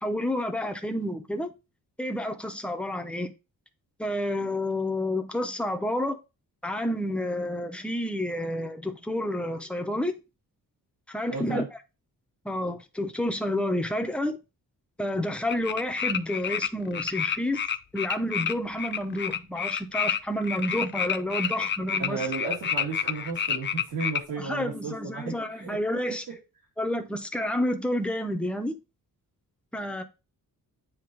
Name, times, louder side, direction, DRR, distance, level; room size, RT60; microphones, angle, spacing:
voice 1, 0.0-1.5 2.0-3.3 4.0-6.2 6.6-10.1 11.1-11.6 12.4-14.4 15.0-17.6 17.9-22.2 24.4-26.2 26.8-28.8 29.7-30.0, left 1 dB, 5° left, 0.7 m, -29 dB
voice 2, 11.3-11.7 22.0-25.8 26.3-26.4, right 4 dB, 75° right, 2.9 m, -34 dB
sound 1, 15.5-16.7 16.9-24.2, left 7 dB, 35° left, 0.4 m, -29 dB
8.7 x 2.9 x 4.6 m
wide cardioid pair, 165°, 35 cm